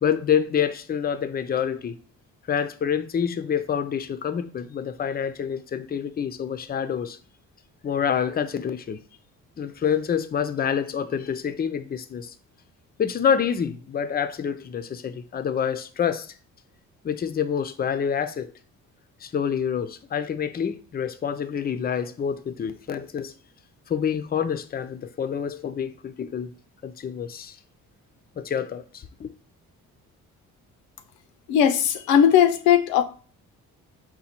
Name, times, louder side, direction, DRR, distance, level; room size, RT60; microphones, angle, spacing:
voice 1, 0.0-2.0 2.5-7.2 7.8-9.0 9.6-12.3 13.0-16.3 17.0-18.5 19.2-23.3 23.9-26.5 26.8-27.6 28.4-29.3, left 7 dB, 25° left, 0.4 m, -27 dB
voice 2, 31.5-33.0, left 9 dB, 85° left, 0.6 m, -18 dB
4.1 x 2.3 x 4.3 m
supercardioid pair, 65°, 35 cm